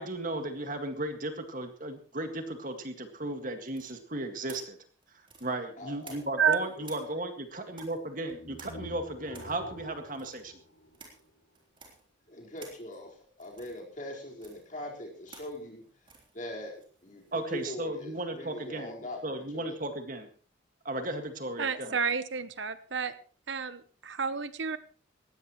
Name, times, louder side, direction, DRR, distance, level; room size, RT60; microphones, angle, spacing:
voice 1, 0.0-4.8 5.1-10.6 17.3-18.9 19.2-20.3 20.8-22.0, right 1 dB, 45° right, 6 dB, 2.0 m, -35 dB
sound 1, 3.7-6.5 6.8-17.8, right 4 dB, 25° right, 3.8 m, -54 dB
voice 2, 5.8-6.2 6.8-7.1 12.3-19.8, left 1 dB, 40° left, -1 dB, 4.6 m, -42 dB
sound 2, 8.3-11.5, equal, 80° left, 3.3 m, -47 dB
voice 3, 21.6-23.1 23.5-24.8, right 6 dB, 70° right, 13 dB, 0.9 m, -30 dB
19.5 x 16.5 x 3.1 m, 0.41 s
head